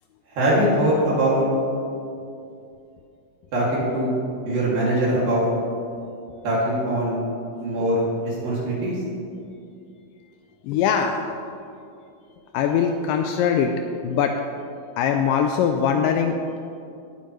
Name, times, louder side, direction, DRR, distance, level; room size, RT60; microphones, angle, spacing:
voice 1, 0.4-1.5 3.5-4.2 4.5-5.5 6.4-7.2 7.6-9.0, right 1 dB, 65° right, -6 dB, 4.1 m, -22 dB
voice 2, 10.6-11.3 12.5-13.8 14.0-14.4 15.0-16.4, left 7 dB, 90° left, 5 dB, 1.9 m, -22 dB
18.0 x 9.0 x 3.2 m, 2.5 s
omnidirectional pair, 4.4 m